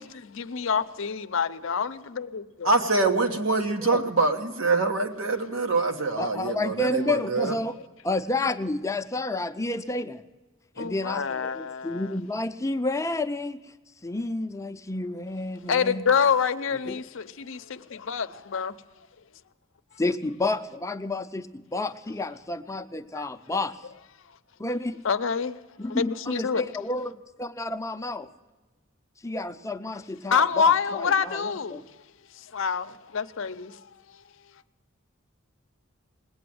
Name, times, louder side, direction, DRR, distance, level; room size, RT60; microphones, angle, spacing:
voice 1, 0.0-2.7 6.5-6.6 10.8-12.1 15.7-18.8 23.1-23.2 25.0-25.6 25.9-26.6 30.3-31.8 32.4-33.8, left 6 dB, 70° left, 0.6 m, -27 dB
voice 2, 2.6-7.5, right 3 dB, 75° right, 1.3 m, -25 dB
voice 3, 6.2-7.8 8.0-10.2 10.8-13.6 14.0-16.0 16.9-17.0 20.0-23.7 24.6-25.0 25.8-28.3 29.2-31.8, left 2 dB, 15° left, 0.5 m, -30 dB
19.5 x 8.6 x 7.7 m
head